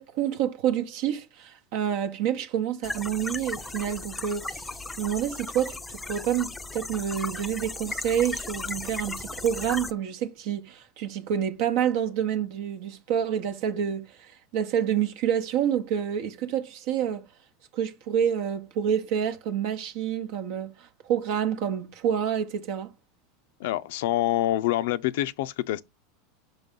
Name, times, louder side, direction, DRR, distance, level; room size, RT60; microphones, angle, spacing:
voice 1, 0.0-4.7 5.0-17.3 17.7-22.9, right 9 dB, 60° right, 0.8 m, -28 dB
sound 1, 2.8-9.9, left 3 dB, 10° left, 0.5 m, -36 dB
voice 2, 23.6-25.8, left 14 dB, 70° left, 0.4 m, -26 dB
5.4 x 5.3 x 3.7 m
supercardioid pair, 150°, 0 cm